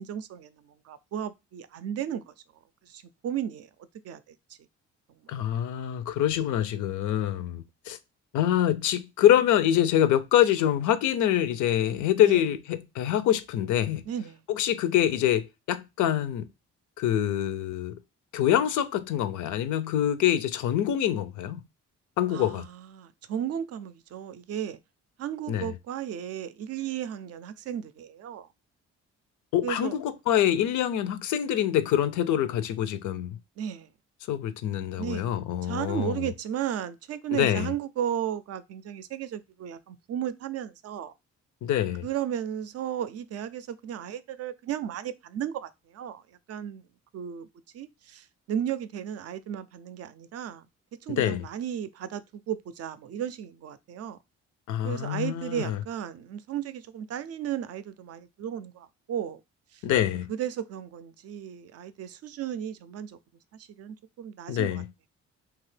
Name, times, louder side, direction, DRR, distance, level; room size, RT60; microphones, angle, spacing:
voice 1, 0.0-2.3 2.8-3.7 4.0-4.4 12.2-12.4 14.1-14.4 22.3-24.8 25.2-28.5 29.6-30.0 33.6-33.9 35.0-35.3 35.6-41.1 42.0-46.2 46.5-46.8 47.1-47.5 47.7-50.7 51.0-54.2 54.8-59.4 59.7-59.8 60.3-63.2 63.6-64.8, right 9 dB, 55° right, 0.4 m, -34 dB
voice 2, 5.3-8.0 8.3-14.0 14.5-16.5 17.0-18.0 18.3-21.6 22.2-22.7 25.5-25.7 29.5-33.3 34.3-36.2 37.3-37.7 41.6-42.0 51.2-51.4 54.7-55.8 59.8-60.3 64.5-64.8, left 11 dB, 75° left, 0.5 m, -25 dB
2.8 x 2.4 x 3.2 m
cardioid pair, 90°, 30 cm